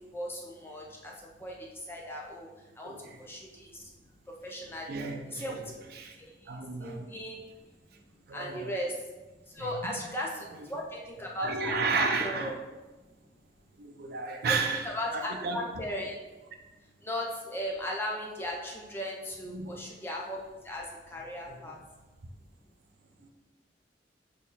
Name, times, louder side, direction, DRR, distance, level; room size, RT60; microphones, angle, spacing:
voice 1, 0.1-1.1 1.4-1.6 1.9-2.5 2.8-2.9 3.3-3.7 4.4-5.6 6.8-7.4 8.3-8.9 9.6-12.5 14.4-14.6 14.8-16.2 17.0-20.4 20.6-21.8, left 1 dB, 15° left, -2 dB, 0.4 m, -37 dB
voice 2, 2.8-3.2 4.9-5.6 6.0-6.2 6.5-7.0 8.3-8.7 9.6-9.9 11.4-12.5 13.8-15.6 19.5-19.8 21.5-21.8 23.2-23.3, right 4 dB, 55° right, 3 dB, 0.5 m, -33 dB
4.2 x 3.1 x 3.9 m, 1.2 s
head